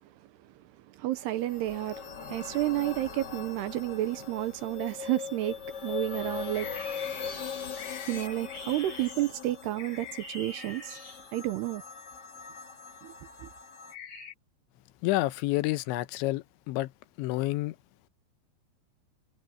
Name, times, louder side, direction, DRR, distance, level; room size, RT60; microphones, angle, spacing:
voice 1, 0.9-7.5 8.1-11.0 11.3-11.8 13.0-13.1 13.4-13.5, right 15 dB, 75° right, 2.8 m, -31 dB
sound 1, 1.2-13.9, left 7 dB, 60° left, 1.1 m, -41 dB
sound 2, 5.5-8.3, left 6 dB, 45° left, 2.2 m, -49 dB
sound 3, 6.5-11.6 13.9-14.3, left 5 dB, 30° left, 5.9 m, -44 dB
voice 2, 15.0-16.9 17.2-17.8, left 18 dB, 90° left, 3.1 m, -29 dB
omnidirectional pair, 5.1 m